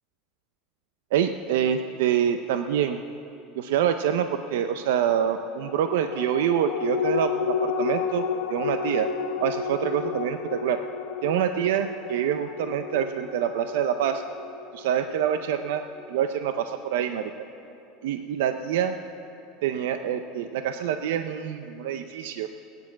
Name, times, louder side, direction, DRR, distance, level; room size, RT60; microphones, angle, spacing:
voice 1, 1.1-3.0 3.6-9.1 9.4-10.8 11.2-14.2 14.7-17.4 18.0-19.0 19.6-22.5, right 9 dB, 75° right, 8 dB, 0.6 m, -26 dB
sound 1, 5.7-16.5 16.9-17.0, left 6 dB, 75° left, 1.1 m, -32 dB
19.5 x 9.5 x 7.4 m, 2.9 s
supercardioid pair, 175°, 0 cm